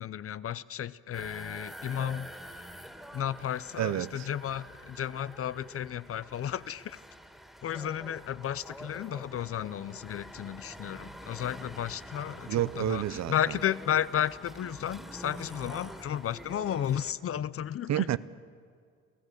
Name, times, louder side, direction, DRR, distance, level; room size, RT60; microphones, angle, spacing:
voice 1, 0.0-2.6 3.1-7.0 7.6-18.0, left 10 dB, 50° left, 0.6 m, -33 dB
sound 1, 1.1-17.1, equal, ahead, 2.2 m, -47 dB
voice 2, 3.8-4.3 12.5-13.6 17.9-18.2, right 12 dB, 65° right, 0.7 m, -29 dB
28.5 x 15.5 x 6.6 m
cardioid pair, 90°, 30 cm